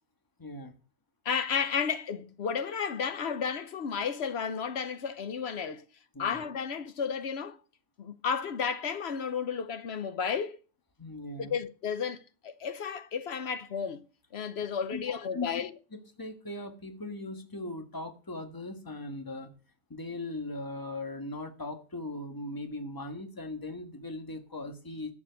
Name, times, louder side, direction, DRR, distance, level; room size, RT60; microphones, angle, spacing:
voice 1, 0.4-0.7 6.1-6.4 11.0-11.5 14.9-15.0 15.3-15.5 15.9-19.5 19.9-25.1, left 2 dB, 15° left, 1.5 m, -39 dB
voice 2, 1.2-5.8 6.2-7.6 8.0-10.6 11.4-14.0 14.3-15.7, left 6 dB, 55° left, 1.0 m, -32 dB
11.5 x 7.2 x 6.8 m
omnidirectional pair, 1.4 m